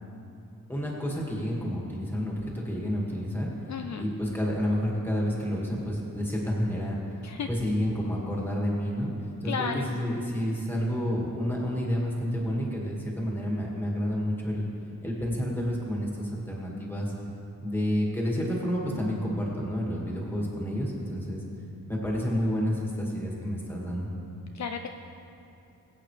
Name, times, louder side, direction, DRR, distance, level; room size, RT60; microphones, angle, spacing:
voice 1, 0.7-3.5 4.0-7.2 7.5-9.1 9.4-14.7 15.0-17.1 17.6-21.4 21.9-24.1, equal, 5° left, -3 dB, 2.0 m, -29 dB
voice 2, 3.7-4.0 7.2-7.5 9.5-9.9 24.6-24.9, left 6 dB, 55° left, 5 dB, 0.5 m, -32 dB
21.5 x 8.4 x 3.3 m, 2.7 s
wide cardioid pair, 175°, 34 cm